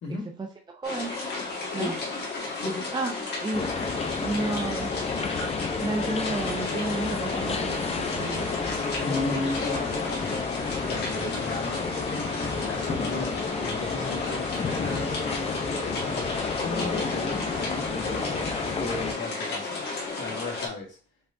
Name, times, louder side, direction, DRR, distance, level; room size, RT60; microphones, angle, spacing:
voice 1, 0.1-1.1 1.7-1.9 2.9-3.1 3.4-3.9 4.2-4.9 5.8-8.5, right 3 dB, 20° right, 3 dB, 0.6 m, -32 dB
sound 1, 0.8-20.7, left 3 dB, 55° left, 1.8 m, -33 dB
voice 2, 2.6-2.9 9.0-11.9 12.4-16.3 16.6-19.8 20.2-21.0, left 2 dB, 75° left, -1 dB, 1.9 m, -35 dB
sound 2, 3.5-19.1, left 4 dB, 30° left, 0.7 m, -31 dB
5.4 x 3.3 x 2.6 m, 0.37 s
cardioid pair, 90°, 20 cm